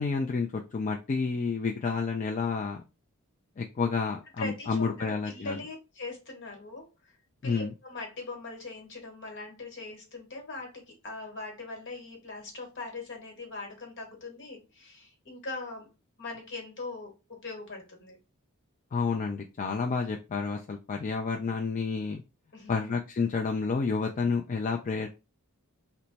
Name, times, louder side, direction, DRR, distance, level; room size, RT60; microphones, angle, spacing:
voice 1, 0.0-2.8 3.6-5.6 7.4-7.7 18.9-22.2 22.7-25.1, left 4 dB, 35° left, 2 dB, 0.3 m, -30 dB
voice 2, 4.4-7.2 7.4-15.9 16.2-18.2 22.5-22.9, left 3 dB, 55° left, 1 dB, 1.3 m, -41 dB
3.0 x 2.2 x 4.0 m, 0.28 s
head